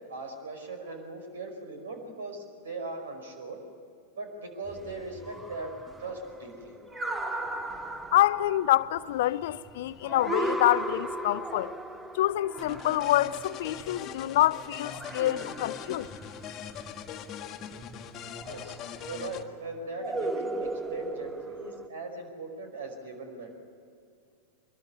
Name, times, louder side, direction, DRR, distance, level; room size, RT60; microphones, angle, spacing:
voice 1, 0.1-3.6 4.2-5.7 6.0-6.8 18.5-23.5, right 2 dB, 65° right, 5.3 m, -39 dB
sound 1, 4.7-14.4 14.8-16.8 18.3-19.0 20.0-21.9, right 1 dB, 10° right, 1.1 m, -37 dB
voice 2, 8.1-11.7 12.1-16.1, left 14 dB, 55° left, 0.6 m, -26 dB
sound 2, 12.6-19.4, left 8 dB, 30° left, 1.6 m, -41 dB
25.0 x 22.0 x 9.9 m
figure-of-eight pair, 90°, 0 cm